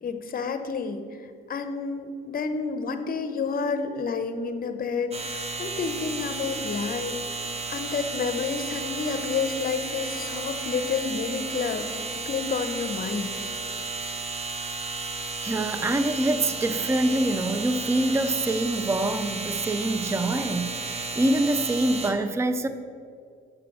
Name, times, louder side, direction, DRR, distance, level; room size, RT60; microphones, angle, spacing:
voice 1, 0.0-7.4 7.7-11.9 12.2-13.3, left 5 dB, 45° left, 8 dB, 0.9 m, -30 dB
sound 1, 5.1-22.1, right 3 dB, 30° right, 1.1 m, -33 dB
voice 2, 15.4-22.7, right 2 dB, 15° right, 10 dB, 0.5 m, -25 dB
7.6 x 5.9 x 6.1 m, 2.3 s
cardioid pair, 90°, 20 cm